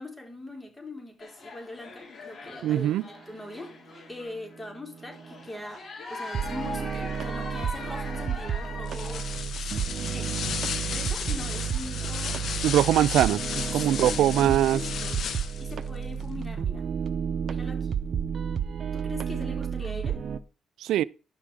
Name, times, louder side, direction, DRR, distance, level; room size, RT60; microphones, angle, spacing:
voice 1, 0.0-2.9 3.3-3.7 4.1-9.2 9.6-12.7 13.9-15.2 15.6-16.8 17.4-17.9 18.9-20.2, left 2 dB, 10° left, 4.1 m, -41 dB
sound 1, 1.2-4.6 5.0-14.3 14.6-14.8, left 3 dB, 40° left, 3.3 m, -43 dB
voice 2, 2.6-3.0 12.6-13.4 13.7-14.8 20.8-21.0, right 12 dB, 80° right, 0.4 m, -22 dB
sound 2, 4.9-5.4 6.3-20.4, right 7 dB, 55° right, 0.8 m, -31 dB
sound 3, 8.9-15.7, left 7 dB, 60° left, 1.2 m, -34 dB
11.5 x 6.2 x 4.9 m
cardioid pair, 90°, 0 cm